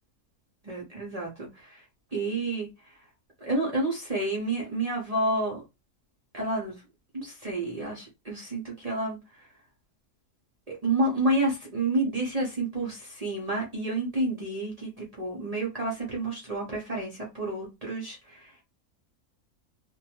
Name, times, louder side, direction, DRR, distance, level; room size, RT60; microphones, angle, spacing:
voice 1, 0.7-1.8 2.1-2.9 3.4-5.6 6.3-6.8 7.1-9.5 10.7-18.5, right 2 dB, 50° right, -3 dB, 0.4 m, -30 dB
2.6 x 2.2 x 2.8 m, 0.24 s
omnidirectional pair, 1.6 m